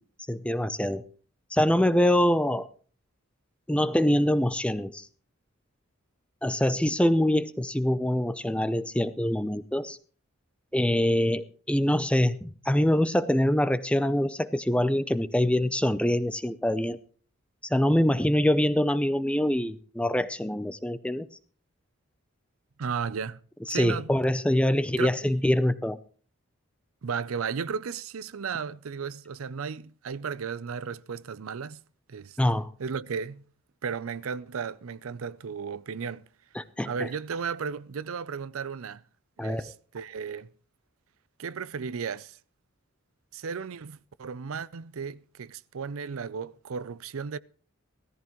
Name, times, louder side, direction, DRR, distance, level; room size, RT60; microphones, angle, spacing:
voice 1, 0.3-1.0 1.5-2.7 3.7-5.1 6.4-10.0 10.7-17.0 17.6-21.3 23.7-26.0 32.4-32.7 36.5-36.9 39.4-39.7, left 1 dB, 5° left, 0.5 m, -24 dB
voice 2, 22.8-23.4 23.7-24.1 25.0-25.2 27.0-31.8 32.1-32.4 32.8-33.4 33.8-36.3 36.8-39.0 39.4-40.5 41.4-42.4 43.3-47.4, right 6 dB, 80° right, 0.5 m, -34 dB
17.0 x 14.0 x 3.1 m
head